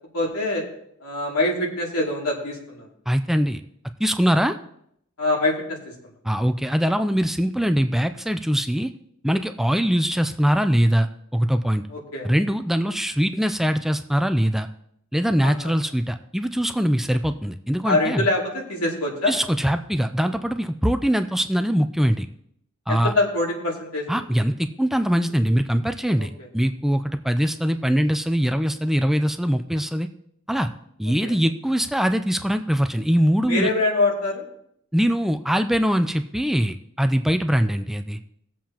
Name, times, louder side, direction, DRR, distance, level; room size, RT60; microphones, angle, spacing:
voice 1, 0.1-0.6 1.0-2.9 5.2-6.0 11.9-12.3 15.4-15.7 17.8-19.3 22.9-24.2 26.2-26.3 31.2-31.3 33.4-34.4, left 2 dB, 90° left, -2 dB, 2.6 m, -24 dB
voice 2, 3.1-3.6 4.0-4.6 6.2-8.9 9.2-11.1 11.3-11.9 12.2-14.7 15.1-18.2 19.3-22.3 22.9-23.1 24.1-30.1 30.5-30.7 31.0-33.7 34.9-38.2, equal, ahead, 8 dB, 0.3 m, -22 dB
19.0 x 7.5 x 2.9 m, 0.72 s
head